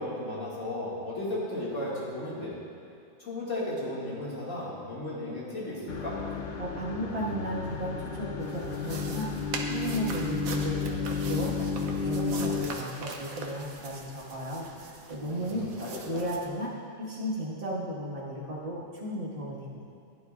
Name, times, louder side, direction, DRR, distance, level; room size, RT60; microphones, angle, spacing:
voice 1, 0.0-2.5 3.2-6.2 15.2-16.2, left 1 dB, 65° left, -7 dB, 2.9 m, -35 dB
sound 1, 5.9-12.7, left 5 dB, 50° left, 0.7 m, -32 dB
voice 2, 6.6-15.7 16.0-16.7 17.0-19.8, equal, 40° right, -7 dB, 2.1 m, -35 dB
sound 2, 8.4-16.5, right 3 dB, 90° right, 1.4 m, -41 dB
15.5 x 9.8 x 2.6 m, 2.5 s
omnidirectional pair, 1.4 m